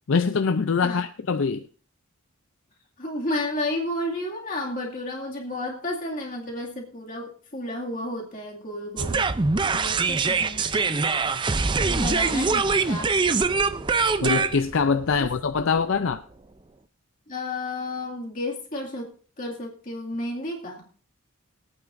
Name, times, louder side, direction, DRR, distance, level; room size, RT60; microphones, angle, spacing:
voice 1, 0.1-1.7 14.2-16.2, left 5 dB, 70° left, 0.5 m, -23 dB
voice 2, 3.0-9.3 9.7-11.0 11.8-13.1 15.2-15.3 17.3-20.9, left 1 dB, 40° left, 2.3 m, -32 dB
sound 1, 9.0-16.1, right 4 dB, 20° right, 0.4 m, -24 dB
22.5 x 9.0 x 2.6 m
head